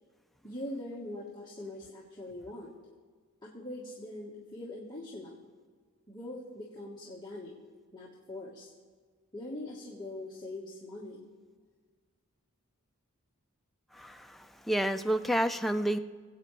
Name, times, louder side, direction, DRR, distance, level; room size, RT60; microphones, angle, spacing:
voice 1, 0.4-2.7 3.4-5.4 6.1-7.5 7.9-8.7 9.3-11.2, left 1 dB, 20° left, -5 dB, 1.4 m, -42 dB
voice 2, 13.9-16.0, right 1 dB, ahead, 6 dB, 0.3 m, -30 dB
25.5 x 8.6 x 3.2 m, 1.5 s
head